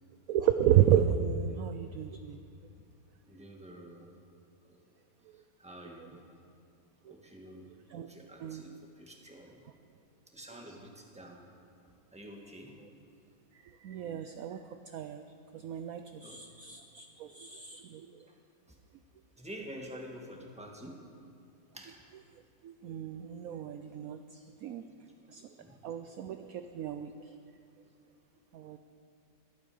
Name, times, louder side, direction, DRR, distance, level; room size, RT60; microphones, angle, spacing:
voice 1, 0.3-2.4 5.2-5.4 6.0-6.1 7.0-7.1 7.9-8.1 8.4-8.7 10.7-10.8 12.8-12.9 13.5-18.3 22.3-24.8 25.3-25.6 25.8-27.4 28.5-28.8, right 10 dB, 70° right, 8 dB, 0.9 m, -32 dB
voice 2, 3.3-4.1 4.7-4.8 5.6-6.2 7.1-7.7 7.9-9.6 10.3-11.4 12.1-12.8 16.2-16.4 18.7-18.8 19.4-21.0 21.7-22.0 25.2-25.3 25.6-25.8, equal, 5° right, 0 dB, 1.5 m, -48 dB
22.5 x 8.9 x 4.9 m, 2.4 s
omnidirectional pair, 1.8 m